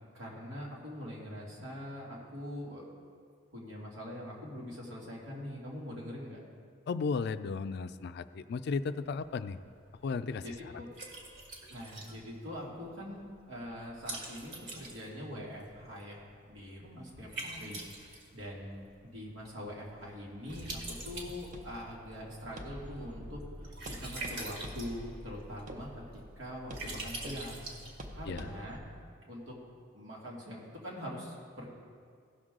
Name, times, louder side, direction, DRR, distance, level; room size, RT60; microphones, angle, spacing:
voice 1, 0.1-2.8 3.5-6.4 10.4-10.9 11.7-23.4 23.9-27.7 28.1-28.8 29.3-29.6 29.9-31.7, equal, 90° right, -4 dB, 2.3 m, -43 dB
voice 2, 6.9-9.6 10.0-10.4 28.3-28.5, left 4 dB, 55° left, 12 dB, 0.3 m, -34 dB
Liquid, 9.0-28.5, right 2 dB, 60° right, 1.7 m, -47 dB
sound 1, 20.5-28.8, equal, 40° right, 0.8 m, -46 dB
16.5 x 6.3 x 3.7 m, 2.2 s
head